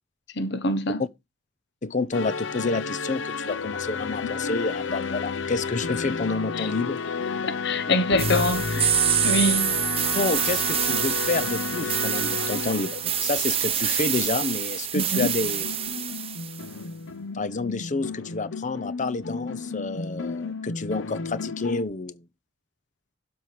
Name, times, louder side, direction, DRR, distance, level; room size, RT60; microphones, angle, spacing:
voice 1, 0.3-1.0 4.2-4.3 6.5-6.7 7.4-9.8 14.9-15.3, left 1 dB, 65° left, 1.1 m, -25 dB
voice 2, 1.8-7.0 10.1-15.6 17.3-22.2, left 3 dB, 40° left, 0.7 m, -29 dB
sound 1, 2.1-13.7 15.1-21.8, left 4 dB, 85° left, 0.8 m, -32 dB
HV-coming-vanishing, 8.2-16.6, right 9 dB, 30° right, 1.0 m, -26 dB
12.5 x 4.8 x 5.1 m
head